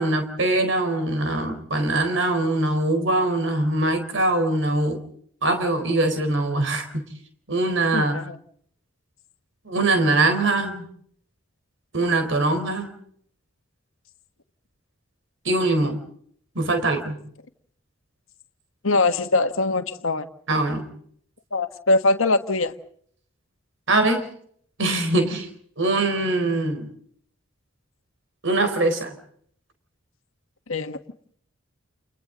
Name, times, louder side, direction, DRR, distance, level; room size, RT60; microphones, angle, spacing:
voice 1, 0.0-5.0 5.4-7.0 7.5-8.2 9.6-10.8 11.9-12.9 15.4-16.0 16.5-17.2 20.5-20.9 23.9-24.3 24.8-25.5 25.8-26.9 28.4-29.1, right 2 dB, 65° right, 4.2 m, -22 dB
voice 2, 7.9-8.4 18.8-20.3 21.5-22.7 30.7-31.0, left 2 dB, 85° left, 1.6 m, -22 dB
30.0 x 29.0 x 3.9 m
head